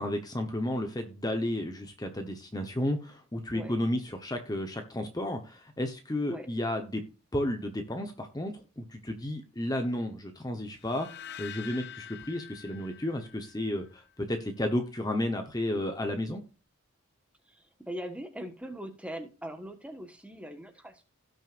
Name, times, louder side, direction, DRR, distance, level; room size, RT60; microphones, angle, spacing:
voice 1, 0.0-7.0 7.3-16.4, left 1 dB, 15° left, 5 dB, 1.0 m, -32 dB
sound 1, 10.8-14.0, left 10 dB, 50° left, 0.6 m, -46 dB
voice 2, 17.5-21.0, equal, 5° right, 6 dB, 1.3 m, -41 dB
17.0 x 6.4 x 2.5 m, 0.33 s
head